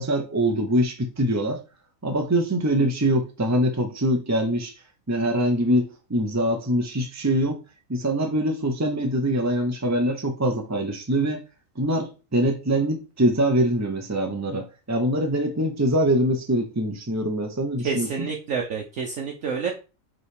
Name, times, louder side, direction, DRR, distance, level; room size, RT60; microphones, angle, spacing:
voice 1, 0.0-1.6 2.0-4.7 5.1-7.6 7.9-11.4 11.8-18.1, right 1 dB, 20° right, 0.4 m, -23 dB
voice 2, 17.8-19.7, right 5 dB, 60° right, 1.1 m, -28 dB
5.5 x 4.0 x 4.8 m
omnidirectional pair, 1.7 m